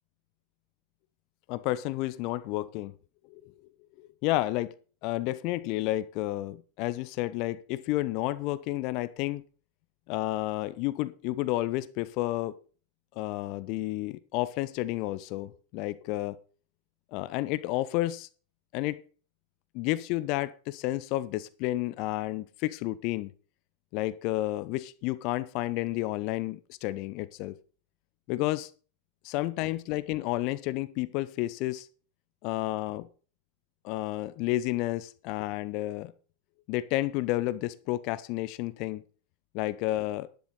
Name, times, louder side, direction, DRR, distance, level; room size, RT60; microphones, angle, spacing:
voice 1, 1.5-2.9 3.3-3.5 4.0-4.7 5.0-9.4 10.1-12.6 13.2-16.4 17.1-18.3 18.7-19.0 19.7-23.3 23.9-27.5 28.3-28.7 29.2-31.9 32.4-33.1 33.8-36.1 36.7-39.0 39.5-40.3, left 17 dB, 45° left, 15 dB, 0.7 m, -31 dB
11.5 x 10.5 x 4.0 m, 0.38 s
figure-of-eight pair, 85°, 0 cm